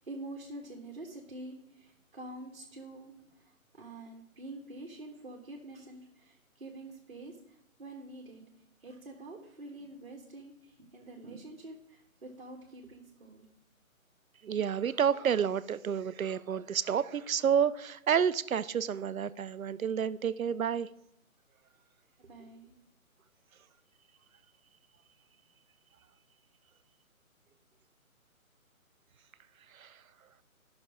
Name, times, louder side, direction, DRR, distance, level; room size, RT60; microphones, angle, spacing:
voice 1, 0.0-8.4 8.8-13.4 22.2-22.7, right 2 dB, 45° right, 1.5 m, -47 dB
voice 2, 14.4-20.9 29.7-30.0, right 8 dB, 75° right, 0.6 m, -30 dB
12.5 x 6.1 x 4.9 m
hypercardioid pair, 175°, 42 cm